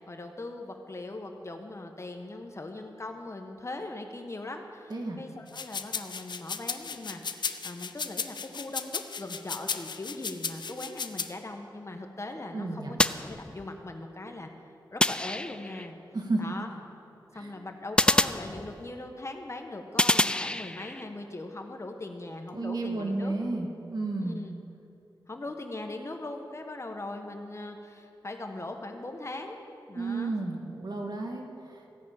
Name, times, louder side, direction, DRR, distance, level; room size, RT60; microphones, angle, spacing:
voice 1, 0.0-14.5 14.9-15.9 16.4-16.7 17.3-23.3 24.2-24.5 25.3-29.6 29.9-30.4, left 2 dB, 35° left, 4 dB, 1.1 m, -40 dB
voice 2, 4.9-5.2 12.5-12.9 16.1-16.6 17.3-17.5 22.5-24.4 29.9-32.0, right 2 dB, 55° right, 1 dB, 1.8 m, -32 dB
sound 1, 5.5-11.3, left 5 dB, 60° left, 0.6 m, -35 dB
sound 2, 13.0-13.9 15.0-15.9 18.0-19.1 20.0-21.0, left 1 dB, 10° left, 0.4 m, -27 dB
15.0 x 6.2 x 8.7 m, 2.8 s
wide cardioid pair, 75°, 8 cm